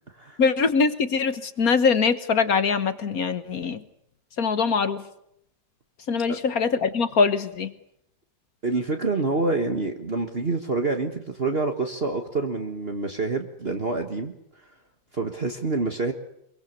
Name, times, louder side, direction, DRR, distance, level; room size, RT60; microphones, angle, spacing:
voice 1, 0.4-3.8 4.4-5.0 6.1-7.7, left 5 dB, 50° left, 12 dB, 1.6 m, -23 dB
voice 2, 8.6-14.3 15.1-16.1, right 3 dB, 35° right, 5 dB, 1.8 m, -27 dB
24.5 x 23.0 x 6.9 m, 0.75 s
omnidirectional pair, 2.0 m